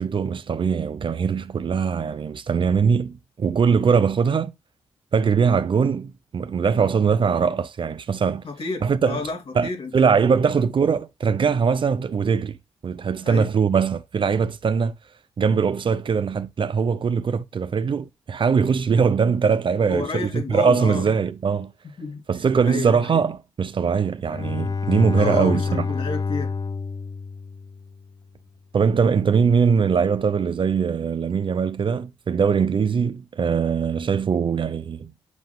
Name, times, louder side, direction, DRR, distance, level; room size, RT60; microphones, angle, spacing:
voice 1, 0.0-4.5 5.1-8.4 8.8-9.2 9.5-12.6 12.8-14.9 15.4-21.7 22.3-25.9 28.7-35.1, right 6 dB, 55° right, 0.6 m, -21 dB
voice 2, 8.4-9.9 10.2-10.4 13.2-13.5 19.9-21.1 22.0-22.2 22.6-23.2 25.2-26.5, left 4 dB, 65° left, 2.6 m, -30 dB
Bowed string instrument, 24.2-28.0, left 4 dB, 40° left, 0.6 m, -27 dB
8.1 x 5.3 x 2.2 m
cardioid pair, 70°, 10 cm